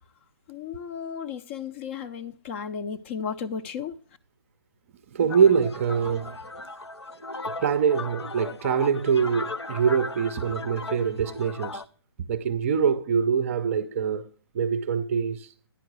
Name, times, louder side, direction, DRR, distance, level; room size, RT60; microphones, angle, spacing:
voice 1, 0.5-4.0, left 6 dB, 30° left, 0.5 m, -34 dB
voice 2, 5.1-6.4 7.5-11.8 12.3-14.3 14.5-15.5, right 7 dB, 30° right, 0.5 m, -24 dB
sound 1, 5.3-11.8, left 3 dB, 85° left, 0.6 m, -37 dB
10.0 x 4.6 x 6.1 m
figure-of-eight pair, 135°, 13 cm